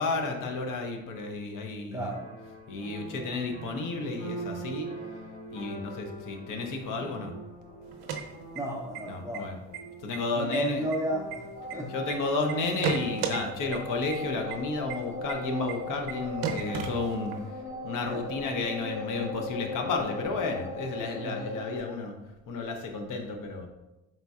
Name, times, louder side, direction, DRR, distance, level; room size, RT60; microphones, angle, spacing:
voice 1, 0.0-2.1 2.7-4.9 5.5-7.3 9.0-9.6 10.0-10.9 11.9-17.3 17.8-22.1 22.5-23.7, left 3 dB, 55° left, 4 dB, 0.8 m, -32 dB
voice 2, 1.9-2.2 8.6-9.5 10.3-11.5 11.7-11.9 18.1-18.3 21.2-21.4, equal, 10° right, 0 dB, 0.5 m, -32 dB
sound 1, 2.1-13.3, right 2 dB, 90° left, 1.5 m, -44 dB
sound 2, 7.9-9.0 9.3-9.4 9.7-10.2 10.5-12.1 12.5-13.4 13.7-13.8 14.1-14.2 14.5-14.6 14.9-15.0 15.3-15.4 15.7-15.8 16.1-16.2 16.4-17.5, right 6 dB, 80° right, 0.7 m, -33 dB
sound 3, 11.5-21.8, left 2 dB, 70° left, 1.1 m, -38 dB
4.3 x 3.9 x 2.3 m, 0.98 s
supercardioid pair, 75°, 38 cm